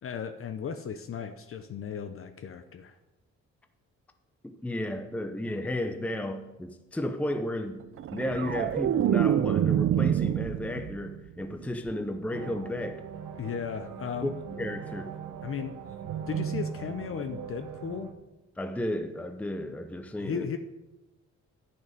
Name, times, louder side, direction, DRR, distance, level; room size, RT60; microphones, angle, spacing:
voice 1, 0.0-3.0 13.4-14.3 15.4-15.8 16.3-18.1 20.2-20.6, left 7 dB, 45° left, 8 dB, 0.7 m, -35 dB
voice 2, 4.4-7.8 8.1-13.0 14.2-14.3 14.6-15.1 18.6-20.5, left 1 dB, 5° left, 7 dB, 0.7 m, -33 dB
sound 1, 8.0-11.2 11.5-11.9, right 10 dB, 45° right, 0.4 m, -26 dB
sound 2, 12.3-18.1, right 8 dB, 80° right, 0.9 m, -39 dB
10.5 x 6.6 x 5.3 m, 1.0 s
cardioid pair, 90°, 30 cm